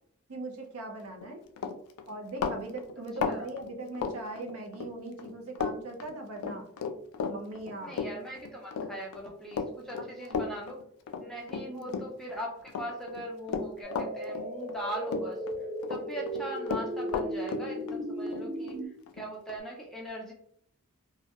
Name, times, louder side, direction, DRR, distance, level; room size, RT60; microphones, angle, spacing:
voice 1, 0.3-1.4 2.1-6.7 7.3-8.0 10.2-10.4 11.6-12.0, right 2 dB, 80° right, 2 dB, 0.6 m, -40 dB
Run, 1.1-1.3 1.6-4.9 5.2-5.8 6.0-12.4 12.7-14.8 15.1-16.0 16.3-19.6, left 5 dB, 80° left, 0.3 m, -34 dB
voice 2, 7.8-10.8 11.2-15.4 15.9-18.8 19.1-20.3, right 1 dB, ahead, -2 dB, 0.3 m, -40 dB
sound 1, 13.8-18.9, equal, 30° right, 0.8 m, -36 dB
2.2 x 2.1 x 2.8 m, 0.68 s
head